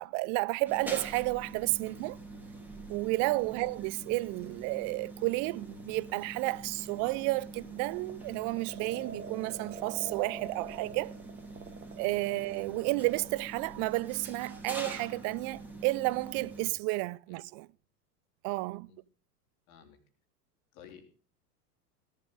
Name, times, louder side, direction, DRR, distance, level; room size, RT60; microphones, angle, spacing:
voice 1, 0.0-2.2 2.9-11.1 12.0-17.7 18.4-18.9, right 23 dB, 35° right, 0.5 m, -32 dB
sound 1, 0.7-16.7, right 2 dB, 5° right, 3.1 m, -45 dB
sound 2, 4.4-13.4, right 6 dB, 20° right, 1.8 m, -45 dB
voice 2, 19.7-20.0 20.7-21.0, left 9 dB, 60° left, 3.7 m, -53 dB
17.0 x 11.5 x 3.6 m
hypercardioid pair, 95°, 48 cm